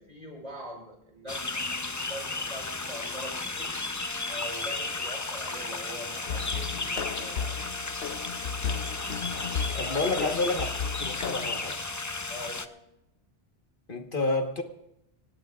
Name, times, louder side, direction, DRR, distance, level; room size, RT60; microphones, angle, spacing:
voice 1, 0.0-1.6 2.0-3.8 4.3-7.6 9.7-10.5 12.3-12.6, equal, 40° right, -1 dB, 6.4 m, -42 dB
sound 1, 1.3-12.7, left 3 dB, 20° left, 0.5 m, -34 dB
Brass instrument, 4.0-12.9, equal, 60° right, 4.1 m, -48 dB
sound 2, 6.3-11.5, left 6 dB, 70° left, 0.9 m, -34 dB
voice 2, 9.8-10.7 11.0-11.7 13.9-14.6, left 3 dB, 55° left, 4 dB, 1.5 m, -29 dB
27.5 x 17.0 x 2.4 m, 0.85 s
omnidirectional pair, 1.0 m